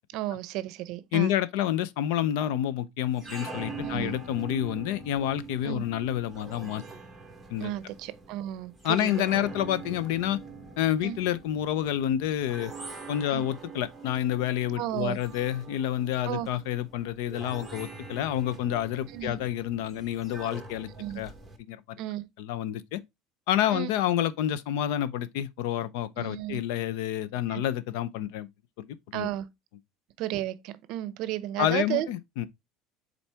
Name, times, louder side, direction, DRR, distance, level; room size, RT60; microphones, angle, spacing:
voice 1, 0.1-1.4 3.8-4.2 5.6-5.8 7.6-9.1 9.4-9.5 11.0-11.2 13.3-13.5 14.8-15.2 16.3-16.5 19.1-19.4 21.0-21.2 22.0-22.3 23.7-23.9 26.2-26.6 27.5-27.6 29.1-29.5 30.2-32.1, right 14 dB, 50° right, 0.6 m, -33 dB
voice 2, 1.1-6.8 7.5-7.7 8.8-10.4 10.8-12.7 13.1-20.9 21.2-21.3 21.6-22.0 22.4-23.0 23.5-28.5 28.8-29.3 31.6-32.5, left 11 dB, 70° left, 0.6 m, -29 dB
sound 1, 3.0-21.6, right 4 dB, 5° right, 1.1 m, -44 dB
7.2 x 4.0 x 3.4 m
cardioid pair, 165°, 0 cm